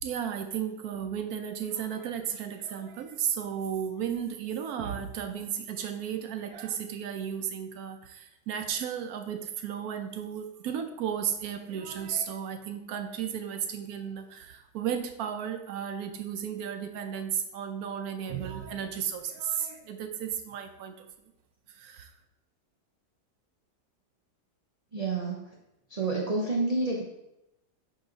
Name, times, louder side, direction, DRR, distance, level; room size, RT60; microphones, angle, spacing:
voice 1, 0.0-21.1 21.7-22.1, right 8 dB, 70° right, 7 dB, 1.0 m, -34 dB
voice 2, 24.9-25.5 25.9-27.0, right 3 dB, 40° right, -2 dB, 0.5 m, -29 dB
7.9 x 3.0 x 3.9 m, 0.89 s
omnidirectional pair, 1.9 m